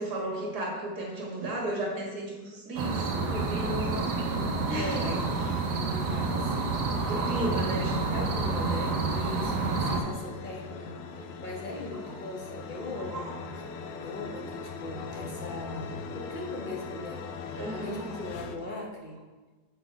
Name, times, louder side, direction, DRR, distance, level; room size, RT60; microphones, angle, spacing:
voice 1, 0.0-4.1 4.7-5.5 7.1-8.3 13.1-13.3 17.6-18.2, right 1 dB, 65° right, -2 dB, 2.0 m, -34 dB
sound 1, 2.8-10.0, right 3 dB, 80° right, 1.4 m, -29 dB
voice 2, 3.5-4.2 4.7-5.2 5.7-6.8 7.0-7.7 8.1-13.3 13.5-13.6 14.0-17.2 17.7-19.2, left 2 dB, 40° left, -2 dB, 0.7 m, -39 dB
sound 2, 4.0-18.6, left 4 dB, 70° left, 1.0 m, -42 dB
6.9 x 4.2 x 4.5 m, 1.3 s
omnidirectional pair, 1.8 m